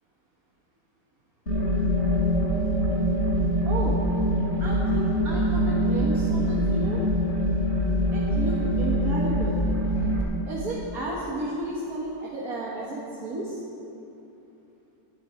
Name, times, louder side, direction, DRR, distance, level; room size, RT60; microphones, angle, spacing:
sound 1, 1.5-10.2, equal, 45° left, 3.3 m, -24 dB
voice 1, 3.7-4.0 4.6-7.0 8.1-9.7 10.5-13.6, right 1 dB, 70° right, -5 dB, 2.1 m, -33 dB
19.0 x 12.0 x 4.5 m, 2.8 s
omnidirectional pair, 1.6 m